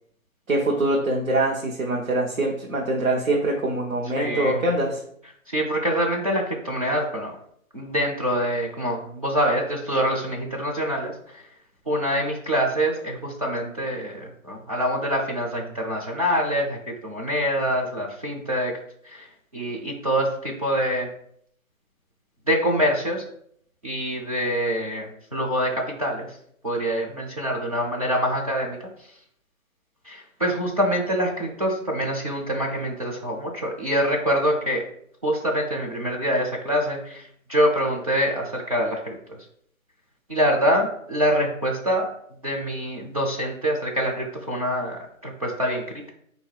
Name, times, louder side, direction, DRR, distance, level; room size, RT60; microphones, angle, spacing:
voice 1, 0.5-5.0, right 2 dB, 70° right, -2 dB, 1.1 m, -24 dB
voice 2, 4.2-4.6 5.5-7.4 7.7-11.4 11.9-16.8 17.0-18.8 19.1-19.3 19.5-21.1 22.5-23.2 23.8-26.3 26.6-28.9 30.1-34.8 35.2-39.4 40.3-42.1 42.4-46.1, equal, 25° right, -3 dB, 0.5 m, -25 dB
3.9 x 2.7 x 4.7 m, 0.66 s
figure-of-eight pair, 150°, 42 cm